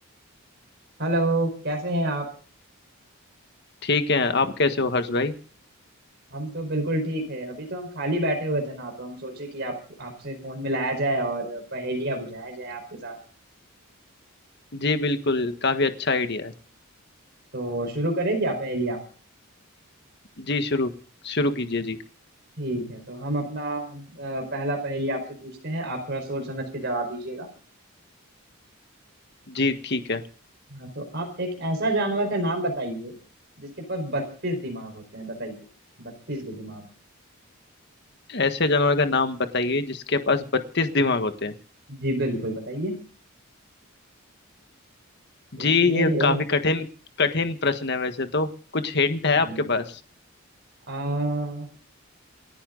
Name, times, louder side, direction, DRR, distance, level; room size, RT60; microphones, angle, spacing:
voice 1, 1.0-2.2 6.3-13.2 17.5-19.0 22.6-27.5 30.7-33.2 33.6-35.6 36.0-36.9 41.9-42.9 45.6-46.4 49.3-49.7 50.9-51.7, right 1 dB, 50° right, 3 dB, 4.8 m, -29 dB
voice 2, 3.8-5.3 14.7-16.5 20.4-20.9 21.2-22.0 29.5-30.2 38.3-41.5 45.5-46.9 47.2-48.5 48.7-50.0, left 3 dB, 50° left, 8 dB, 1.5 m, -24 dB
28.5 x 10.0 x 4.0 m, 0.41 s
head